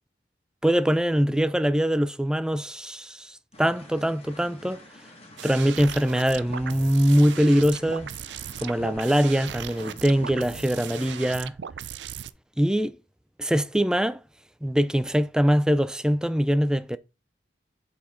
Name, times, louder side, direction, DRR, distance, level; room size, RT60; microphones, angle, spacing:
voice 1, 0.6-4.8 5.4-8.1 8.6-11.5 12.6-13.0 13.4-14.2 14.6-17.0, equal, 5° right, 0.4 m, -23 dB
sound 1, 3.5-11.3, left 1 dB, 35° left, 1.9 m, -49 dB
sound 2, 5.4-12.3, right 8 dB, 90° right, 0.4 m, -38 dB
8.2 x 4.2 x 4.4 m
head